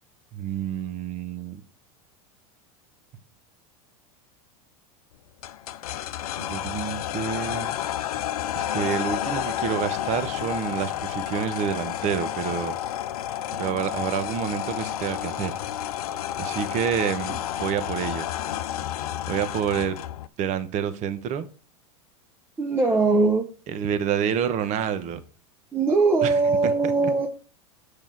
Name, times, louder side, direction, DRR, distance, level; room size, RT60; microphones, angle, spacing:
voice 1, 0.3-1.6 6.4-7.7 8.6-12.8 13.5-15.6 16.4-18.3 19.3-20.0 20.4-21.5 23.7-25.2 26.2-27.1, right 8 dB, 40° right, 11 dB, 1.0 m, -28 dB
sound 1, 5.4-20.3, left 11 dB, 85° left, 0.6 m, -30 dB
voice 2, 22.6-23.5 25.7-27.3, right 3 dB, 10° right, 4 dB, 1.0 m, -21 dB
7.2 x 4.9 x 5.8 m, 0.36 s
supercardioid pair, 125°, 19 cm